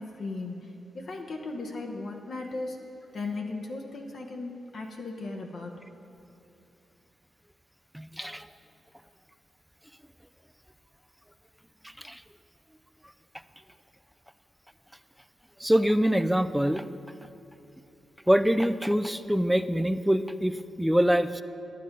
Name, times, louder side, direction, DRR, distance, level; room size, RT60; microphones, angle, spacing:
voice 1, 0.0-2.8 3.1-5.7, left 3 dB, 55° left, 1 dB, 0.9 m, -37 dB
voice 2, 7.9-8.5 12.0-12.2 15.6-16.8 18.3-21.4, equal, 5° right, 12 dB, 0.3 m, -24 dB
10.5 x 8.5 x 5.2 m, 2.7 s
cardioid pair, 90°, 0 cm